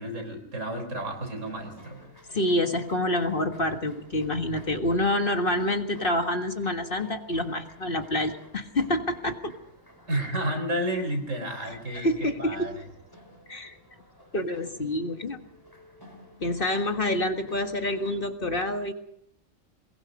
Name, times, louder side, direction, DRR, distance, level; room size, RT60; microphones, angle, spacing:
voice 1, 0.0-2.0 10.1-12.8 14.8-14.9, right 1 dB, 70° right, 5 dB, 4.6 m, -31 dB
sound 1, 0.9-18.2, left 1 dB, 15° left, 5.0 m, -53 dB
voice 2, 2.3-9.5 11.9-12.7 13.5-13.8 14.3-15.4 16.4-18.9, left 1 dB, 45° left, 5 dB, 1.8 m, -27 dB
22.0 x 22.0 x 5.3 m, 0.73 s
omnidirectional pair, 1.4 m